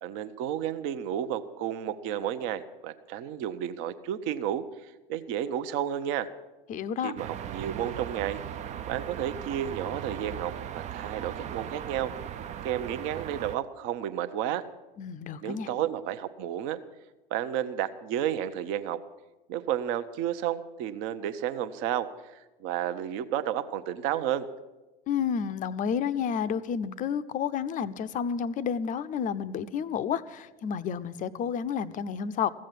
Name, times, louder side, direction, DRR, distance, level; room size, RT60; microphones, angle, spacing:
voice 1, 0.0-4.6 5.1-6.3 7.0-8.4 8.8-12.1 12.6-14.6 15.4-16.8 17.3-19.0 19.5-24.5, right 10 dB, 45° right, 11 dB, 0.9 m, -32 dB
voice 2, 6.7-7.1 15.0-15.7 25.1-32.5, left 7 dB, 25° left, 12 dB, 0.6 m, -30 dB
sound 1, 7.2-13.6, right 9 dB, 25° right, 0.5 m, -38 dB
15.0 x 7.5 x 9.1 m, 1.1 s
figure-of-eight pair, 90°, 30 cm